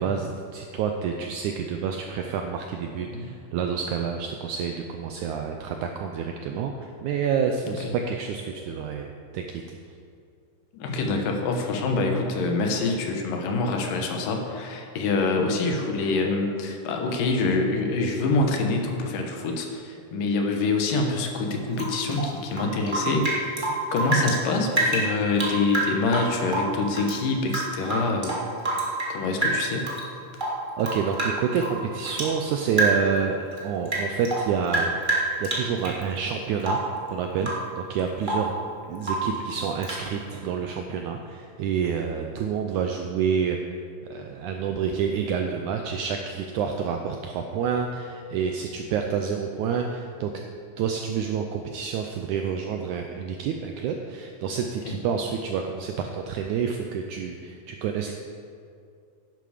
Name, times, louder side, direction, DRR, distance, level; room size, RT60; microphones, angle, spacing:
voice 1, 0.0-9.8 30.8-34.9 35.4-36.8 37.1-38.5 38.9-43.6 44.1-50.3 50.8-58.1, right 7 dB, 80° right, 4 dB, 1.7 m, -28 dB
voice 2, 10.7-23.6 23.9-28.3 29.1-29.9 54.9-55.0, left 3 dB, 75° left, 2 dB, 2.6 m, -26 dB
Rain / Drip, 21.7-24.4 24.7-27.2 27.5-29.1 29.4-30.0 30.3-32.4 32.7-33.2 33.5-36.0 36.6-37.0 37.4-37.7 38.0-38.5 39.0-39.4 39.8-40.1, right 2 dB, 65° right, 0.5 m, -27 dB
10.5 x 10.5 x 5.0 m, 2.4 s
omnidirectional pair, 4.1 m